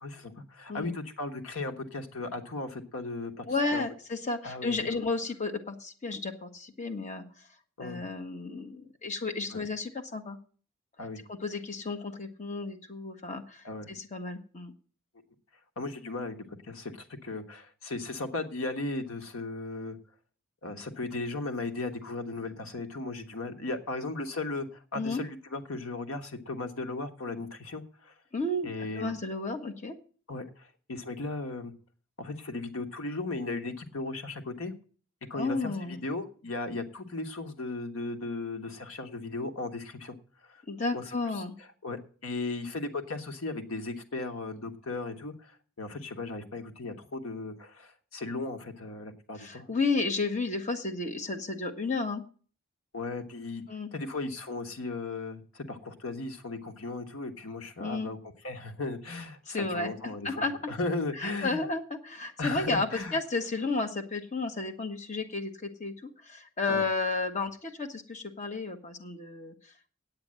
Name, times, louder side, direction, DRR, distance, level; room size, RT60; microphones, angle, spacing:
voice 1, 0.0-3.5 3.7-3.8 4.4-4.8 7.8-8.0 9.5-9.6 11.0-11.2 13.6-13.9 15.8-20.0 20.6-28.1 28.6-29.1 30.3-31.7 32.2-34.7 35.3-40.2 40.4-40.6 40.9-41.0 41.3-41.4 41.8-49.7 52.9-53.6 53.9-58.2 58.4-61.6 62.4-63.2 66.7-66.8, left 3 dB, 85° left, 6 dB, 1.3 m, -36 dB
voice 2, 3.5-7.2 7.8-10.4 11.3-14.7 24.9-25.2 28.3-28.7 29.0-30.0 35.3-36.0 40.7-41.5 49.4-52.2 53.7-53.9 57.8-58.1 59.5-60.6 61.2-69.7, left 3 dB, 35° left, 5 dB, 1.2 m, -32 dB
9.0 x 8.7 x 7.6 m, 0.42 s
head